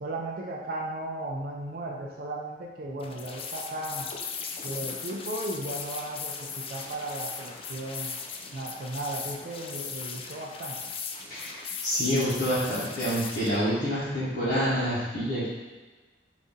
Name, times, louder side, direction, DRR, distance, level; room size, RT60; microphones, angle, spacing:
voice 1, 0.0-4.1 4.6-8.1 8.5-10.8, right 2 dB, 55° right, -1 dB, 0.5 m, -35 dB
sound 1, 3.0-13.6, left 5 dB, 30° left, 0.3 m, -38 dB
voice 2, 11.3-15.5, equal, 60° left, -13 dB, 1.1 m, -27 dB
4.0 x 2.7 x 3.6 m, 1.3 s
head